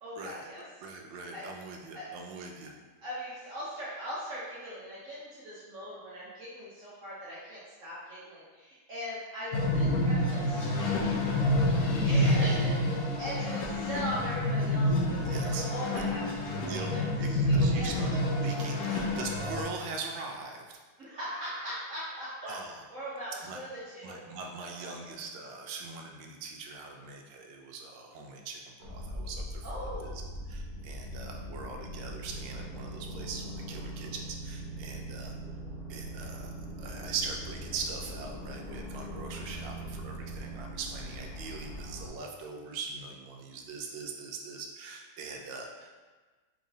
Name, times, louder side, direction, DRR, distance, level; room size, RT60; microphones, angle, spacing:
voice 1, 0.0-0.6 1.3-1.5 1.9-2.1 3.0-11.1 12.0-18.0 18.8-19.0 21.0-22.5 22.9-23.7 23.9-24.2 29.6-30.2, equal, 60° right, -8 dB, 0.9 m, -40 dB
voice 2, 0.8-2.7 15.3-16.0 16.6-16.9 17.2-20.7 22.4-22.8 23.4-23.6 24.0-30.1 30.5-35.3 35.9-36.5 36.8-46.0, right 4 dB, 75° right, 2 dB, 1.3 m, -41 dB
sound 1, 9.5-19.6, left 1 dB, 75° left, 0.8 m, -28 dB
sound 2, 28.8-42.1, equal, 60° left, 1.1 m, -41 dB
4.8 x 2.9 x 2.7 m, 1.3 s
omnidirectional pair, 2.2 m